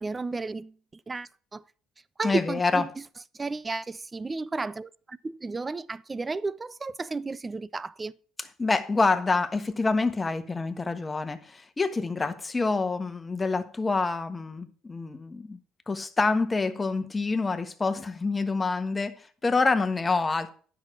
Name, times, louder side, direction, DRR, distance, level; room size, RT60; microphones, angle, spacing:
voice 1, 0.0-1.6 2.2-2.9 3.3-8.1, right 3 dB, 25° right, 0.5 m, -33 dB
voice 2, 2.2-2.8 8.6-15.6 15.9-20.5, left 3 dB, 25° left, 1.3 m, -27 dB
9.7 x 6.2 x 6.1 m
hypercardioid pair, 65°, 0 cm